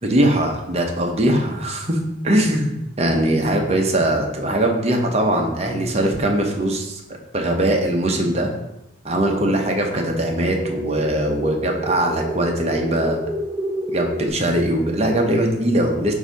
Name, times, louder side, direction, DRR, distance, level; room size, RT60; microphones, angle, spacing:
voice 1, 0.0-2.0 2.2-7.0 7.3-8.5 9.0-13.2 13.9-16.1, right 1 dB, 35° right, 2 dB, 0.9 m, -21 dB
sound 1, 9.3-14.3, right 1 dB, 15° right, 0.5 m, -30 dB
7.9 x 2.8 x 5.2 m, 0.87 s
head